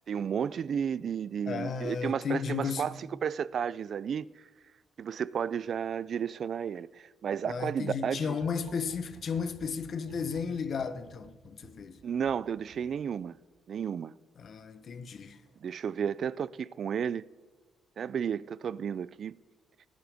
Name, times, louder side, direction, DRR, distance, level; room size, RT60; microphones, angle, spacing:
voice 1, 0.1-2.9 3.2-4.3 5.0-8.4 12.0-13.4 13.7-14.1 15.6-17.2 18.0-19.4, right 7 dB, 55° right, 0.4 m, -32 dB
voice 2, 1.5-2.9 7.4-12.0 14.4-15.4, left 5 dB, 55° left, 1.0 m, -34 dB
sound 1, 8.3-13.5 15.3-15.7 16.0-16.1, right 4 dB, 75° right, 1.6 m, -55 dB
18.0 x 10.5 x 3.5 m
cardioid pair, 90°, 0 cm